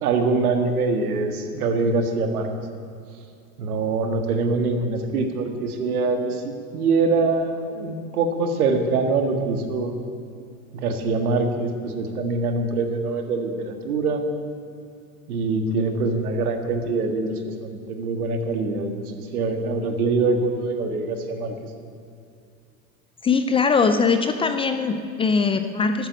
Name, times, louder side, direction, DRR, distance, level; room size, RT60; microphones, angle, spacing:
voice 1, 0.0-2.5 3.6-9.9 10.7-14.2 15.3-21.5, right 3 dB, 90° right, 6 dB, 1.8 m, -24 dB
voice 2, 23.2-26.1, left 5 dB, 15° left, 8 dB, 0.4 m, -21 dB
11.5 x 8.4 x 9.6 m, 2.5 s
supercardioid pair, 120°, 43 cm